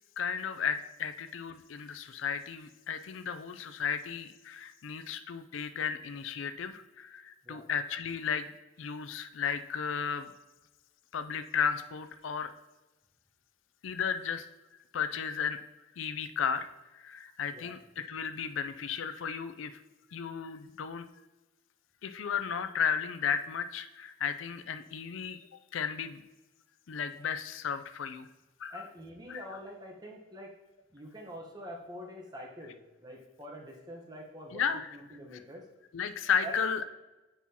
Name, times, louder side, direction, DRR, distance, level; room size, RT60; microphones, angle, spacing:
voice 1, 0.2-8.5 8.8-10.3 11.1-12.5 13.8-14.5 14.9-15.6 16.0-16.7 16.9-19.8 20.1-21.1 22.0-25.4 25.7-26.2 26.9-28.3 28.6-28.8 29.3-29.4 34.5-35.0 35.9-36.9, left 7 dB, 85° left, 10 dB, 0.4 m, -34 dB
voice 2, 28.7-30.6 30.9-35.7 36.4-36.6, equal, 20° right, 0 dB, 1.0 m, -45 dB
8.3 x 5.6 x 2.8 m, 1.1 s
head